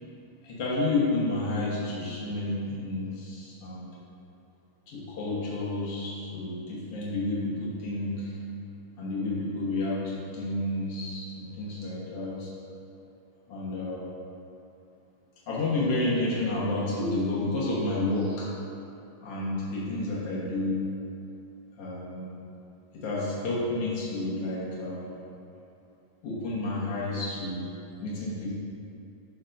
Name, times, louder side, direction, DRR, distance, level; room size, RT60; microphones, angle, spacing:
voice 1, 0.4-3.9 4.9-8.3 9.0-12.5 13.5-14.0 15.5-18.5 19.2-20.8 21.8-22.3 22.9-25.1 26.2-27.7 28.0-28.5, left 2 dB, 75° left, -7 dB, 1.3 m, -30 dB
13.5 x 5.8 x 2.6 m, 2.6 s
omnidirectional pair, 4.7 m